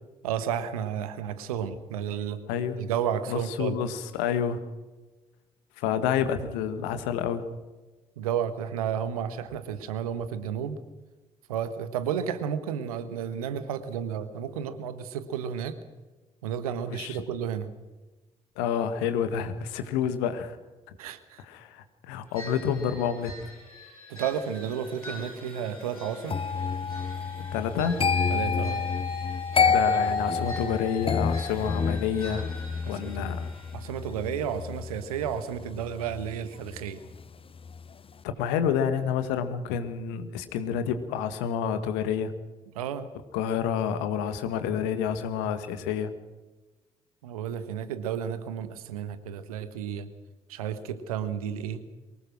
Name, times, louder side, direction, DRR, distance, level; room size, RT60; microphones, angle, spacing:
voice 1, 0.2-2.4 2.8-3.8 8.2-10.8 11.5-15.8 16.4-17.7 21.0-21.4 24.1-26.4 28.3-28.8 29.9-30.1 32.8-33.3 33.7-37.0 42.7-43.1 47.2-50.1 50.5-51.9, right 8 dB, 80° right, 12 dB, 1.4 m, -32 dB
voice 2, 3.3-4.6 5.8-7.4 16.9-17.2 18.6-20.6 21.4-23.3 27.5-28.0 29.6-32.5 32.9-33.5 38.2-42.3 43.3-46.1, left 8 dB, 70° left, 10 dB, 1.8 m, -29 dB
sound 1, 22.3-33.7, left 1 dB, 90° left, 5.0 m, -46 dB
sound 2, 26.3-37.3 37.5-37.9, left 5 dB, 30° left, 0.8 m, -29 dB
23.5 x 19.5 x 6.2 m, 1.2 s
figure-of-eight pair, 40°, 18 cm